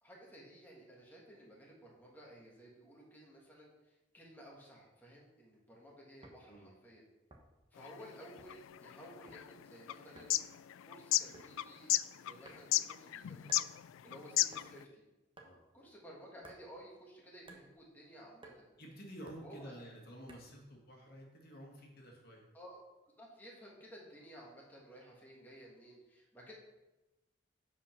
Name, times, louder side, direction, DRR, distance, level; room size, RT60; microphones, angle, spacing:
voice 1, 0.0-7.0 7.7-10.4 10.8-15.0 15.7-18.7 19.4-19.7 22.5-22.8 23.2-26.5, equal, 10° left, -3 dB, 1.6 m, -55 dB
sound 1, 6.2-6.5 7.3-7.7 8.4-8.7 9.0-9.4 10.2-10.4 11.3-11.5 12.4-12.8 13.5-13.7 14.5-14.7 15.4-15.6 16.4-16.6 17.4-17.7 18.4-18.6 19.3-19.5 20.3-20.6, right 2 dB, 25° right, 1.0 m, -56 dB
sound 2, 7.8-14.8, left 15 dB, 90° left, 0.3 m, -34 dB
voice 2, 18.8-22.4, equal, 50° left, 0 dB, 1.8 m, -51 dB
8.3 x 4.9 x 5.9 m, 1.0 s
head